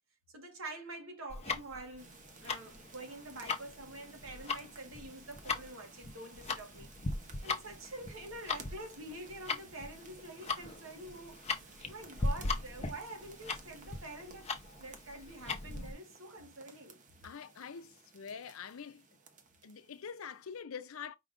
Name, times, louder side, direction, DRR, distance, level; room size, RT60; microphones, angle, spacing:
voice 1, 0.3-6.9 7.4-14.5 14.8-17.0, right 2 dB, 75° right, 1.4 m, -47 dB
Tick-tock, 1.3-15.9, left 3 dB, 30° left, 0.6 m, -38 dB
sound 1, 2.0-20.6, right 4 dB, 40° right, 0.8 m, -56 dB
voice 2, 17.2-19.0 19.6-21.2, left 6 dB, 85° left, 0.6 m, -45 dB
5.0 x 2.5 x 3.6 m
head